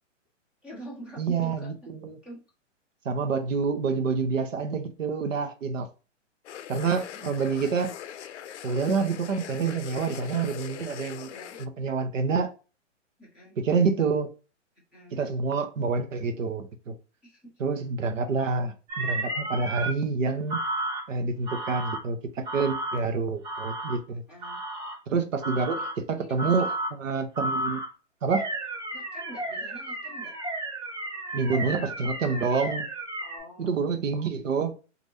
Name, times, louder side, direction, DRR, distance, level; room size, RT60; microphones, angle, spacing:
voice 1, 0.6-1.7 2.2-2.4 6.9-7.2 11.3-11.6 13.2-13.6 14.9-15.2 17.2-17.5 24.3-24.6 25.8-26.8 28.9-30.3 33.2-33.8, right 1 dB, 5° right, 0.4 m, -45 dB
voice 2, 1.2-2.2 3.0-5.9 6.7-7.9 8.6-11.3 11.6-12.5 13.6-14.3 15.1-16.9 17.6-20.6 21.1-24.2 25.1-26.7 27.0-27.8 28.2-28.5 31.3-32.9 33.6-34.7, right 5 dB, 85° right, 0.8 m, -27 dB
sound 1, 6.4-11.7, left 10 dB, 65° left, 0.5 m, -41 dB
sound 2, 18.9-19.9 20.5-21.0 21.5-22.0 22.4-23.0 23.4-24.0 24.4-25.0 25.4-25.9 26.4-26.9 27.3-27.9 28.3-33.4, right 1 dB, 30° right, 1.7 m, -32 dB
3.2 x 2.5 x 2.6 m
hypercardioid pair, 140°, 37 cm